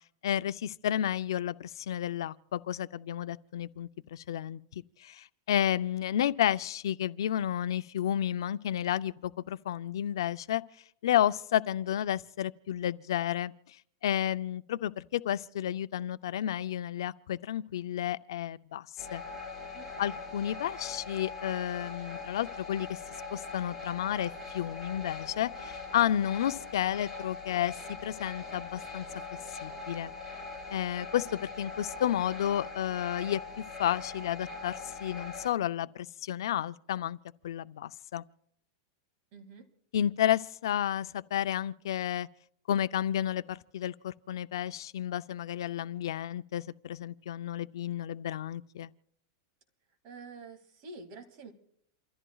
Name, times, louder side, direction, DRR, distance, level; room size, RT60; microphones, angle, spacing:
voice 1, 0.2-4.6 5.0-10.6 11.0-13.8 14.0-19.2 20.0-23.0 23.3-29.1 29.6-30.1 30.7-37.2 37.4-38.2 39.9-42.3 42.7-48.9, left 11 dB, 80° left, 0.5 m, -31 dB
sound 1, 19.0-35.5, left 4 dB, 10° right, 3.6 m, -42 dB
voice 2, 19.7-20.2 39.3-39.6 50.0-51.5, right 3 dB, 45° right, 2.3 m, -48 dB
28.5 x 14.0 x 2.4 m
supercardioid pair, 150°, 2 cm